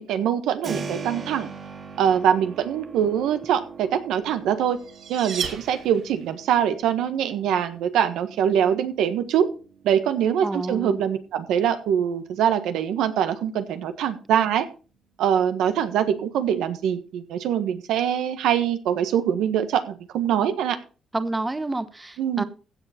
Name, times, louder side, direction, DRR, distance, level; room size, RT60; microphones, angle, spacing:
voice 1, 0.0-1.5 2.0-4.8 5.1-9.4 9.8-14.6 15.2-20.8 22.2-22.4, right 9 dB, 85° right, 1.4 m, -23 dB
Keyboard (musical), 0.6-11.3, right 5 dB, 50° right, 3.3 m, -41 dB
sound 1, 4.3-6.4, right 6 dB, 70° right, 2.8 m, -34 dB
voice 2, 10.4-11.0 21.1-22.4, right 2 dB, 15° right, 1.0 m, -29 dB
15.5 x 7.1 x 4.4 m
cardioid pair, 90°, 0 cm